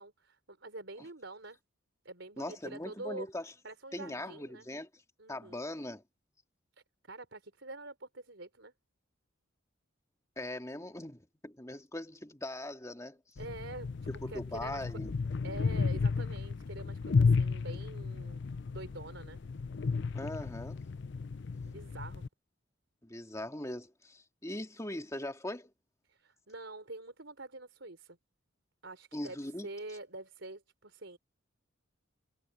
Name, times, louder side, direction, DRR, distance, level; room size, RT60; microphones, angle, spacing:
voice 1, 0.0-1.6 2.0-3.3 3.6-4.7 5.2-5.6 7.1-8.7 13.4-13.9 14.3-14.8 15.4-18.4 18.7-19.4 21.6-22.2 26.1-28.2 28.8-29.4 29.6-31.2, right 2 dB, 70° right, 4.2 m, -46 dB
voice 2, 2.4-3.5 3.9-4.9 5.3-6.0 10.4-13.2 14.1-15.1 20.1-20.8 23.0-25.7 29.1-29.7, left 1 dB, 15° left, 2.3 m, -40 dB
sound 1, 13.4-22.3, left 4 dB, 60° left, 0.5 m, -33 dB
head